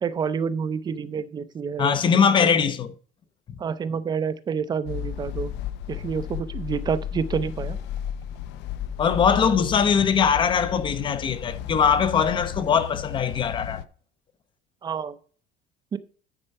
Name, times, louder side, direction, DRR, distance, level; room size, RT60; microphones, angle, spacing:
voice 1, 0.0-2.0 2.4-2.5 3.6-5.5 5.9-7.8 14.8-15.2 15.9-16.0, right 6 dB, 20° right, 0.5 m, -28 dB
voice 2, 1.8-2.9 9.0-13.8, left 7 dB, 25° left, 0.6 m, -21 dB
sound 1, 4.9-13.9, left 9 dB, 65° left, 0.6 m, -34 dB
9.8 x 4.4 x 5.4 m
cardioid pair, 170°, 20 cm